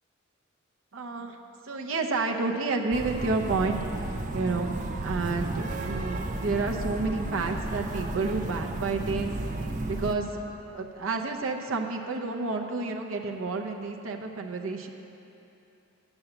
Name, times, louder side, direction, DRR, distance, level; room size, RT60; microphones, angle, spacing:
voice 1, 0.9-1.4 1.6-9.4 9.9-14.9, right 3 dB, 75° right, 2 dB, 0.7 m, -30 dB
sound 1, 2.9-10.1, right 2 dB, 40° right, 0.5 m, -33 dB
9.0 x 7.0 x 6.9 m, 3.0 s
head